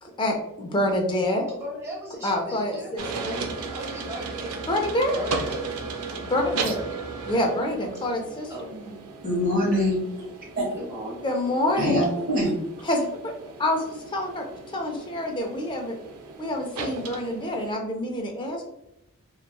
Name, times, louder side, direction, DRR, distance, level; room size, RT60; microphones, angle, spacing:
voice 1, 0.0-1.5 2.2-3.4 4.7-5.2 6.3-6.8 7.3-8.7 11.2-12.0 12.8-13.3 13.6-16.0 16.4-18.6, left 1 dB, 20° left, 2 dB, 0.4 m, -27 dB
voice 2, 1.5-2.9 3.7-4.6 5.1-5.6 8.5-8.6 10.7-11.2, right 1 dB, 15° right, -5 dB, 0.9 m, -37 dB
sound 1, 3.0-17.7, right 4 dB, 80° right, 0.4 m, -36 dB
voice 3, 9.2-10.0 10.6-10.7 11.8-12.5, equal, 40° right, -5 dB, 0.7 m, -23 dB
3.0 x 2.3 x 2.2 m, 0.84 s
head